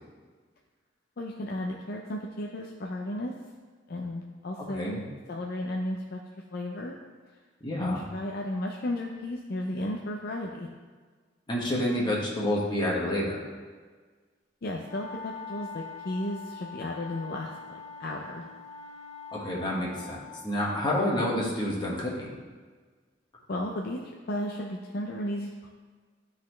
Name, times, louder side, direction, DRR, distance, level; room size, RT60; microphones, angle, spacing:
voice 1, 1.2-3.3 3.9-6.2 6.5-6.9 7.8-10.7 14.6-17.5 18.0-18.5 23.5-24.0 24.3-25.7, left 1 dB, 55° left, 0 dB, 0.6 m, -34 dB
voice 2, 4.6-5.1 7.6-8.0 11.5-13.5 19.3-22.3, left 1 dB, 25° left, -5 dB, 1.5 m, -29 dB
sound 1, 14.8-20.3, left 5 dB, 80° left, 1.6 m, -43 dB
12.0 x 4.2 x 3.2 m, 1.5 s
head